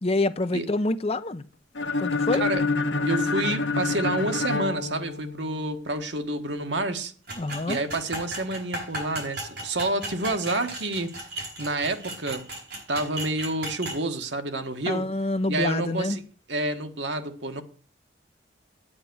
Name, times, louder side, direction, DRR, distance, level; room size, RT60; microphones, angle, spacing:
voice 1, 0.0-1.4 2.0-2.4 7.4-7.8 14.9-16.2, left 2 dB, 35° left, 0.6 m, -26 dB
sound 1, 1.8-5.7, left 3 dB, 80° left, 1.0 m, -27 dB
voice 2, 2.3-2.6 3.0-7.1 7.7-11.2 11.6-12.5 12.9-15.1 15.5-16.2 16.5-17.6, right 2 dB, 80° right, 1.6 m, -29 dB
sound 2, 7.3-14.0, right 1 dB, 60° right, 7.0 m, -36 dB
9.7 x 9.5 x 6.2 m
head